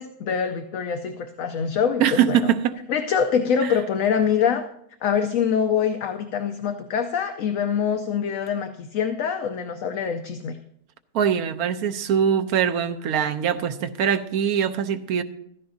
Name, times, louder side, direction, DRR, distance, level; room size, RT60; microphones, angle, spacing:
voice 1, 0.0-2.4 2.9-4.6 5.0-10.6, left 7 dB, 65° left, 7 dB, 1.0 m, -24 dB
voice 2, 2.0-2.8 3.6-3.8 11.1-15.2, right 8 dB, 75° right, 9 dB, 1.2 m, -22 dB
15.0 x 13.5 x 2.7 m, 0.73 s
omnidirectional pair, 1.6 m